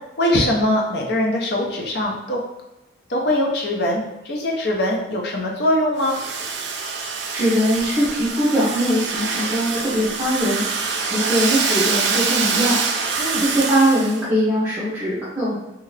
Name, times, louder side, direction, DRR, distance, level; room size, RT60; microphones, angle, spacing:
voice 1, 0.2-2.4 3.1-6.2 13.2-13.4, left 1 dB, 55° left, -1 dB, 0.6 m, -22 dB
Domestic sounds home sounds, 6.0-14.2, right 5 dB, 65° right, 0.4 m, -25 dB
voice 2, 7.3-10.6 11.1-12.8 13.4-15.5, equal, 10° right, -12 dB, 0.9 m, -21 dB
2.8 x 2.4 x 3.2 m, 0.96 s
head